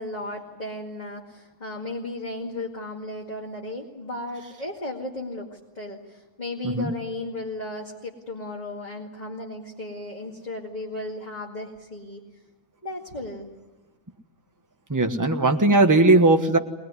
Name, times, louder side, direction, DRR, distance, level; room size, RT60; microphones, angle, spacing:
voice 1, 0.0-12.2 12.8-13.5, left 2 dB, 30° left, -2 dB, 2.3 m, -35 dB
voice 2, 14.9-16.6, right 2 dB, 15° right, 5 dB, 1.3 m, -18 dB
22.0 x 21.0 x 9.7 m, 1.1 s
omnidirectional pair, 1.4 m